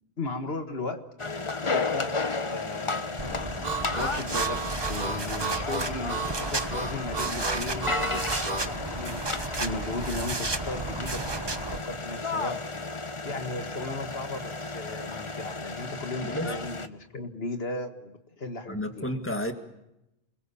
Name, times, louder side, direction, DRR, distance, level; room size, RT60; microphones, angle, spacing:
voice 1, 0.2-1.1 1.6-2.1 2.5-3.6 4.0-11.2 11.7-12.6 13.2-19.0, left 2 dB, 75° left, 7 dB, 2.0 m, -36 dB
sound 1, 1.2-16.9, left 3 dB, 30° left, 1.1 m, -33 dB
sound 2, 3.2-11.8, right 3 dB, 25° right, 1.1 m, -33 dB
Harmonica, 3.6-8.7, right 5 dB, 45° right, 1.4 m, -33 dB
voice 2, 16.2-16.5 18.7-19.5, left 1 dB, 10° left, 6 dB, 2.1 m, -31 dB
28.5 x 21.5 x 7.1 m, 0.90 s
omnidirectional pair, 1.0 m